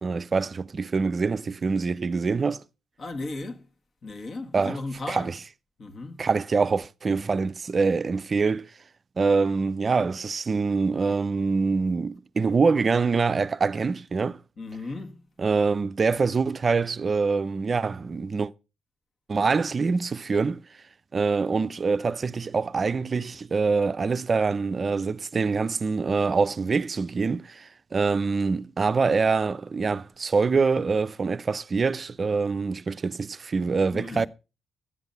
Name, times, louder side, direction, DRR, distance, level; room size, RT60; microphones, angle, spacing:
voice 1, 0.0-2.6 4.5-4.8 5.1-5.3 6.2-8.7 9.2-14.4 15.4-18.5 19.3-20.6 21.1-34.3, right 4 dB, 35° right, 0.5 m, -25 dB
voice 2, 3.0-3.7 4.0-5.3 5.8-6.3 14.6-15.3 33.9-34.3, left 2 dB, 50° left, 1.7 m, -36 dB
11.5 x 8.0 x 5.5 m
cardioid pair, 90°, 0 cm